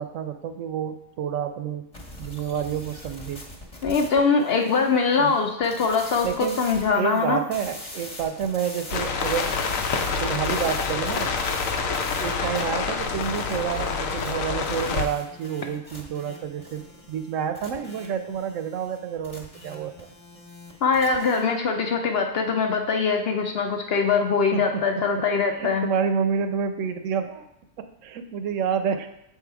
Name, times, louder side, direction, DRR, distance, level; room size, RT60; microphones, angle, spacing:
voice 1, 0.0-1.9 2.2-3.4 5.2-5.4 6.2-6.6 6.9-9.6 10.2-11.3 12.2-19.9 24.5-24.8 25.6-27.4 27.8-29.1, right 7 dB, 75° right, 8 dB, 0.9 m, -29 dB
sound 1, 1.9-21.4, left 1 dB, 30° left, 1.1 m, -42 dB
voice 2, 3.8-7.4 20.8-25.8, left 5 dB, 60° left, 3 dB, 0.7 m, -22 dB
sound 2, 8.9-15.1, left 5 dB, 80° left, 1.1 m, -27 dB
7.0 x 3.7 x 4.6 m, 0.78 s
omnidirectional pair, 1.4 m